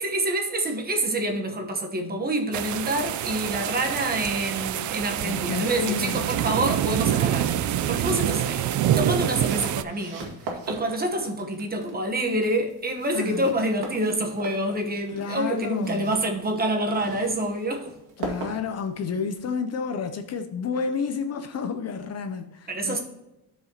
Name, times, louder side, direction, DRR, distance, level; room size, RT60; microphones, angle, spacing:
voice 1, 0.0-8.6 8.9-10.3 10.7-17.9 22.7-23.0, right 1 dB, 25° right, 1.0 m, -27 dB
sound 1, 2.5-9.8, right 11 dB, 50° right, 0.4 m, -26 dB
voice 2, 5.2-6.2 13.1-13.5 15.1-16.1 18.2-23.0, left 6 dB, 40° left, 0.6 m, -30 dB
sound 2, 6.9-19.4, right 4 dB, 85° right, 2.1 m, -41 dB
12.5 x 4.9 x 2.9 m
cardioid pair, 145°, 39 cm